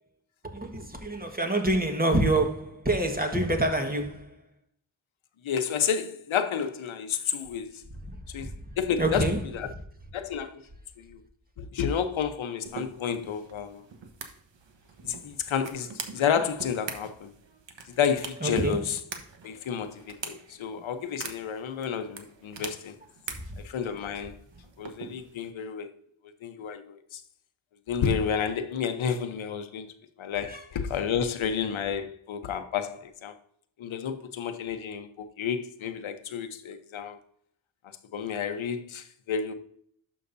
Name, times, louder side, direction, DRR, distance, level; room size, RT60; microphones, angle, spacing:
voice 1, 0.4-4.4 8.1-8.5 9.0-9.4 18.4-18.8 30.5-30.6, right 2 dB, 20° right, 1.5 m, -27 dB
voice 2, 5.4-7.8 8.3-8.5 8.8-9.3 9.5-9.7 10.1-10.6 11.0-11.2 11.6-13.8 15.0-17.3 17.9-19.0 19.4-22.9 23.6-24.3 24.8-25.9 26.4-27.2 27.9-29.9 30.2-33.3 33.8-37.2 38.1-39.5, left 7 dB, 80° left, 0.9 m, -30 dB
sound 1, 12.7-25.5, right 5 dB, 65° right, 1.3 m, -44 dB
11.5 x 5.8 x 2.6 m
cardioid pair, 70°, 47 cm